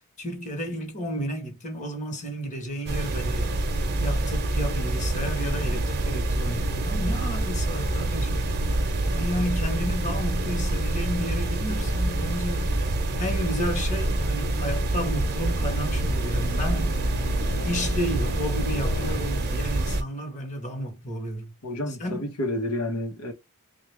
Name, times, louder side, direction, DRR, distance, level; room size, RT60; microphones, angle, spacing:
voice 1, 0.2-3.6 4.0-8.5 9.1-12.8 13.2-17.0 17.6-21.5 21.9-22.3, equal, 35° left, 1.1 m, -32 dB
sound 1, 2.9-20.0, right 2 dB, 45° right, 0.7 m, -26 dB
sound 2, 4.3-19.4, left 3 dB, 70° left, 0.4 m, -40 dB
voice 2, 21.6-23.3, left 1 dB, 85° left, 1.0 m, -30 dB
3.4 x 2.4 x 3.2 m
head